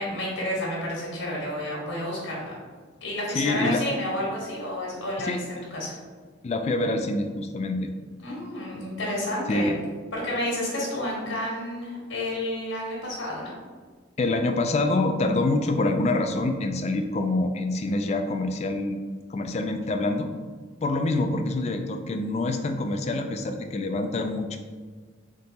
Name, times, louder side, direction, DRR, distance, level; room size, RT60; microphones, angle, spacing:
voice 1, 0.0-2.5 3.0-6.0 8.2-9.7 10.1-13.5, left 1 dB, 80° left, -5 dB, 1.3 m, -30 dB
voice 2, 3.3-3.8 5.2-5.4 6.4-7.9 9.5-9.8 14.2-19.0 19.3-20.3 20.8-24.6, left 2 dB, 35° left, 5 dB, 0.3 m, -26 dB
3.7 x 2.8 x 4.0 m, 1.5 s
head